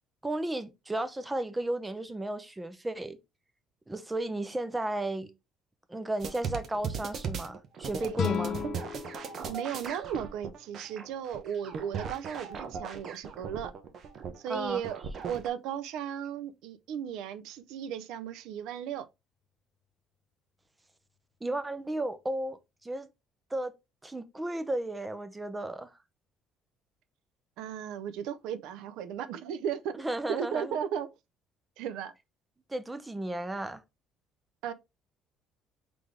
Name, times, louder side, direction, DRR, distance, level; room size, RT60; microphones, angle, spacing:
voice 1, 0.2-3.2 3.9-5.3 5.9-8.6 14.5-14.8 21.4-23.1 23.5-23.7 24.0-25.9 30.0-30.8 32.7-33.8, right 1 dB, 10° right, 0.6 m, -34 dB
sound 1, 6.2-15.5, right 6 dB, 50° right, 0.8 m, -38 dB
sound 2, 8.1-11.2, left 9 dB, 50° left, 0.5 m, -36 dB
voice 2, 9.5-13.7 14.4-15.0 15.2-19.1 27.6-31.1 31.8-32.1 34.6-34.7, right 8 dB, 85° right, 0.5 m, -35 dB
4.0 x 3.3 x 3.2 m
cardioid pair, 125°, 0 cm